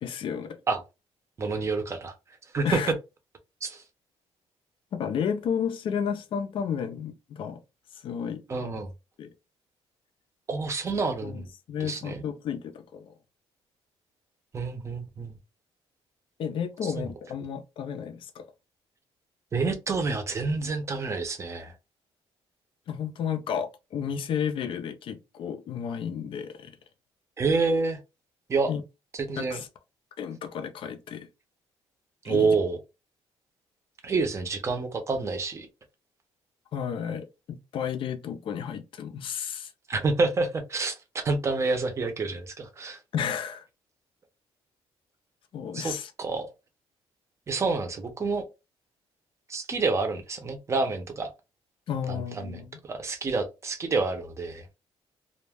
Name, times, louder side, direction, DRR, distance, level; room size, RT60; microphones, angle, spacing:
voice 1, 0.0-0.6 2.6-2.9 4.9-7.6 8.0-8.8 9.2-9.3 11.2-13.1 16.4-18.4 22.9-26.7 28.7-28.8 29.4-29.7 30.2-31.3 32.2-32.6 36.7-39.7 43.1-43.6 45.5-46.1 51.9-52.8, left 7 dB, 55° left, 0.5 m, -32 dB
voice 2, 1.4-2.1 2.5-2.8 3.6-3.8 8.5-8.9 10.5-11.5 11.8-12.2 14.5-15.3 17.0-17.1 19.5-21.7 27.4-28.0 28.5-28.7 29.3-29.6 32.2-32.8 34.0-35.7 39.9-43.0 45.7-45.9 46.2-46.5 47.5-48.5 49.5-51.3 52.1-52.6 52.9-54.7, right 4 dB, 25° right, 0.6 m, -28 dB
2.3 x 2.1 x 3.3 m
cardioid pair, 140°, 11 cm